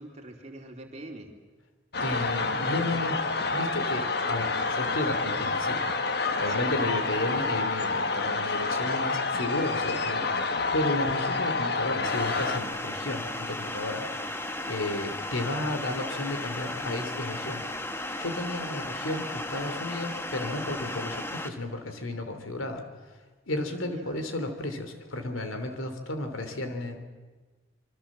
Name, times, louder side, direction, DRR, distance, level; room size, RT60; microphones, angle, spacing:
voice 1, 0.0-1.4 6.5-6.7 23.6-24.2, right 1 dB, 35° right, 3 dB, 3.0 m, -44 dB
sound 1, 1.9-12.6, left 3 dB, 50° left, 1.4 m, -28 dB
voice 2, 2.0-5.8 6.4-14.1 14.7-17.6 18.1-22.8 23.5-27.0, left 2 dB, 85° left, 7 dB, 3.3 m, -33 dB
sound 2, 12.0-21.5, left 1 dB, 10° left, 1.2 m, -35 dB
26.5 x 24.5 x 7.5 m, 1.3 s
head